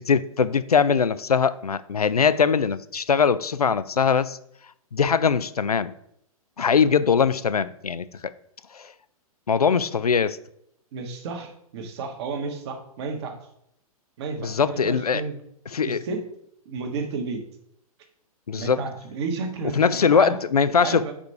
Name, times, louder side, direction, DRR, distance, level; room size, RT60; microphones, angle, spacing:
voice 1, 0.0-4.4 4.9-5.9 6.6-8.1 8.7-8.9 9.5-10.4 14.4-15.2 15.7-16.0 18.5-18.8 19.8-21.1, left 6 dB, 85° left, 0.4 m, -21 dB
voice 2, 10.9-13.4 14.2-15.4 15.8-16.2 16.6-17.4 18.5-20.4 20.8-21.1, right 4 dB, 45° right, 1.3 m, -32 dB
5.0 x 4.9 x 4.6 m
figure-of-eight pair, 115°, 19 cm